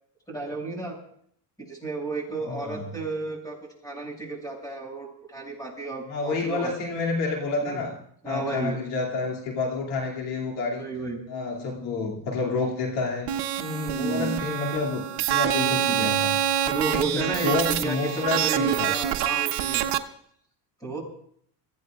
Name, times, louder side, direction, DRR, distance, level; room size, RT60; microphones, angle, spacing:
voice 1, 0.3-1.0 1.6-3.6 3.8-6.7 7.6-7.8 8.2-8.8 10.8-11.2 13.6-14.4 15.5-16.1 16.6-18.0 18.3-19.8 20.8-21.0, right 3 dB, 10° left, 0 dB, 6.6 m, -32 dB
voice 2, 2.5-2.8 6.1-7.9 8.2-10.9 11.3-13.3 13.9-16.3 16.9-18.9, left 3 dB, 85° left, -1 dB, 2.7 m, -29 dB
sound 1, 13.3-20.0, right 10 dB, 65° right, 1.0 m, -26 dB
26.0 x 15.0 x 2.4 m, 0.65 s
supercardioid pair, 100°, 43 cm